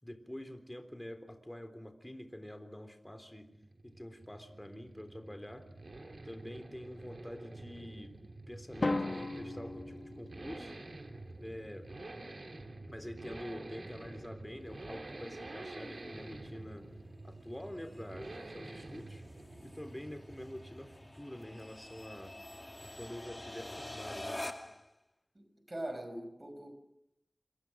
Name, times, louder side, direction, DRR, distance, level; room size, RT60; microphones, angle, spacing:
voice 1, 0.0-3.5 3.8-5.7 6.2-8.1 8.5-10.8 11.3-11.9 12.9-16.9 17.2-19.2 19.6-22.4 22.8-24.4, left 1 dB, 15° left, 7 dB, 3.7 m, -46 dB
sound 1, 3.2-21.2, right 2 dB, 70° right, 3.4 m, -48 dB
Drum, 8.8-10.8, left 2 dB, 65° left, 1.1 m, -36 dB
sound 2, 14.6-24.9, left 1 dB, 30° left, 2.3 m, -48 dB
voice 2, 25.3-26.7, right 1 dB, 35° right, 8 dB, 5.3 m, -42 dB
27.0 x 24.0 x 6.4 m, 0.80 s
wide cardioid pair, 55°, 0 cm